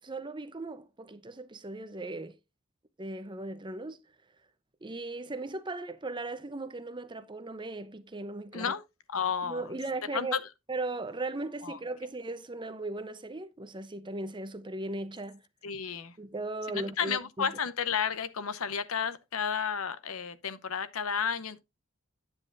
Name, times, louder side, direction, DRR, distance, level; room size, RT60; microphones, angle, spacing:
voice 1, 0.0-2.4 3.0-4.0 4.8-8.7 9.4-10.3 10.7-15.4 16.2-17.5, right 2 dB, 20° right, 0.7 m, -37 dB
voice 2, 9.1-9.7 10.1-10.4 11.6-11.8 15.6-16.2 16.7-21.6, left 7 dB, 75° left, 0.8 m, -32 dB
9.7 x 8.1 x 2.6 m
head